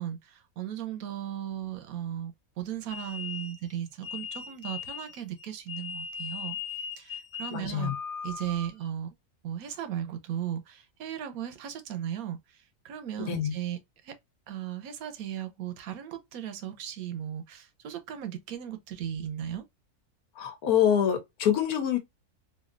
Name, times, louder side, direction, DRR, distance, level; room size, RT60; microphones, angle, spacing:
voice 1, 0.0-7.9 8.2-9.1 9.4-14.1 14.5-19.7, right 10 dB, 75° right, 1.0 m, -36 dB
sound 1, 2.9-8.9, left 6 dB, 25° left, 0.7 m, -39 dB
voice 2, 7.5-7.9 13.2-13.5 20.4-22.0, left 9 dB, 75° left, 1.2 m, -26 dB
3.1 x 2.6 x 2.3 m
omnidirectional pair, 1.6 m